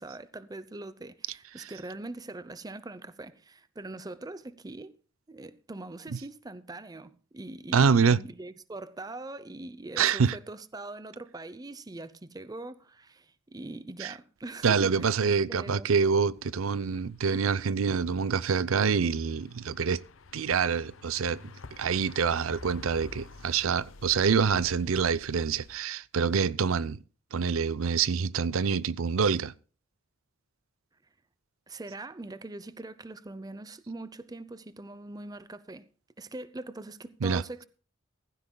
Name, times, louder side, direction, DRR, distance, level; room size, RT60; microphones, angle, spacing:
voice 1, 0.0-4.9 5.3-15.1 15.5-15.9 31.7-35.9 36.2-37.6, right 2 dB, 20° right, 0.6 m, -42 dB
voice 2, 7.7-8.2 10.0-10.4 14.0-14.1 14.6-20.0 20.3-21.4 21.8-27.0 27.3-29.5 37.2-37.4, right 6 dB, 90° right, 0.5 m, -26 dB
sound 1, 16.3-25.8, left 3 dB, 80° left, 0.8 m, -50 dB
16.5 x 15.0 x 2.2 m
head